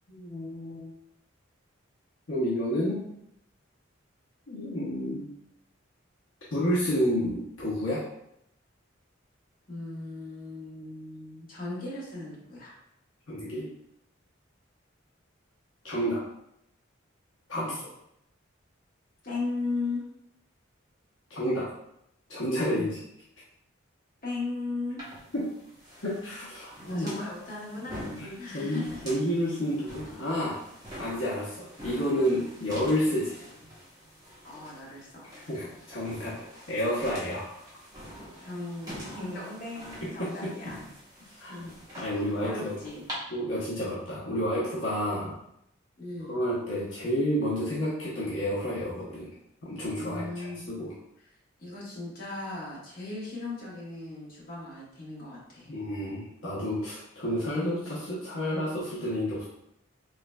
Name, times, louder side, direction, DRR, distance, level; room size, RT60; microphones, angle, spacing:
voice 1, 0.1-0.9 2.3-3.0 4.5-5.3 6.5-8.0 13.3-13.7 15.8-16.2 17.5-17.8 21.3-21.7 22.3-23.0 25.3-25.4 26.0-27.1 28.2-30.6 31.0-33.4 35.5-37.6 40.2-40.5 41.4-41.6 42.0-42.8 43.3-45.3 46.3-49.3 49.6-50.9 55.7-59.5, equal, 70° left, -7 dB, 0.9 m, -30 dB
voice 2, 9.7-12.7 17.5-17.7 19.2-20.0 22.7-22.9 24.2-25.0 26.9-28.0 28.4-29.1 34.4-35.3 38.4-40.9 41.2-41.7 42.4-43.1 46.0-46.4 50.0-50.7 51.6-55.7, left 2 dB, 45° left, -6 dB, 1.2 m, -37 dB
sound 1, 25.0-43.1, equal, 20° right, 0.9 m, -46 dB
3.7 x 3.2 x 2.2 m, 0.77 s
head